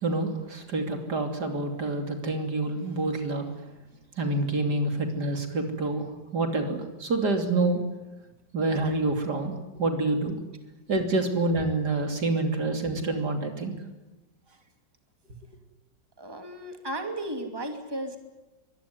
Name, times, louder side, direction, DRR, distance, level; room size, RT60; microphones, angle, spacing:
voice 1, 0.0-3.5 4.2-7.8 8.5-10.4 10.9-13.8, right 2 dB, 65° right, 5 dB, 3.5 m, -27 dB
voice 2, 16.2-18.2, right 1 dB, 15° right, 5 dB, 2.7 m, -34 dB
24.0 x 20.5 x 9.7 m, 1.1 s
omnidirectional pair, 1.9 m